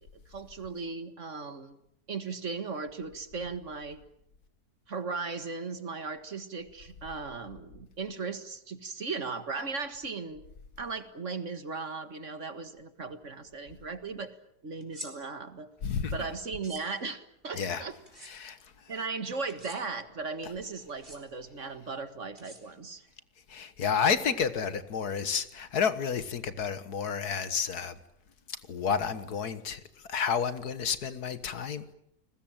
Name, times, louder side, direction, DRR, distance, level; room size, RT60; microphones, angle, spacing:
voice 1, 0.1-1.8 2.1-4.0 4.9-10.4 10.8-14.3 14.6-15.7 16.1-17.9 18.9-23.0, right 4 dB, 50° right, 2.0 m, -37 dB
sound 1, 14.8-15.1 16.5-16.8 18.1-18.3 19.5-19.8 20.9-21.2 22.4-23.0, equal, 30° right, 4.8 m, -46 dB
voice 2, 15.8-16.2 17.5-17.9 18.2-18.9 23.5-28.0 28.5-31.9, left 6 dB, 70° left, 1.9 m, -31 dB
30.0 x 20.5 x 8.9 m
omnidirectional pair, 1.7 m